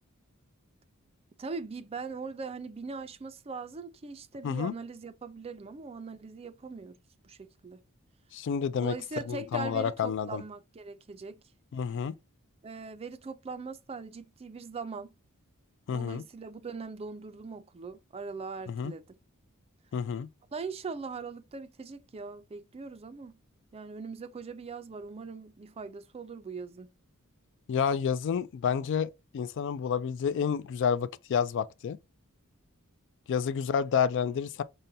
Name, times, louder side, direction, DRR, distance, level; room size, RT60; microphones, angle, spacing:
voice 1, 1.4-7.0 7.2-7.8 8.8-11.4 12.6-15.1 15.9-19.0 20.5-23.4 23.7-26.9, right 4 dB, 25° right, 0.4 m, -41 dB
voice 2, 8.3-8.9 9.3-10.4 11.7-12.1 15.9-16.2 18.7-18.9 19.9-20.3 27.7-32.0 33.3-34.6, left 7 dB, 55° left, 0.3 m, -29 dB
5.3 x 2.2 x 2.6 m
head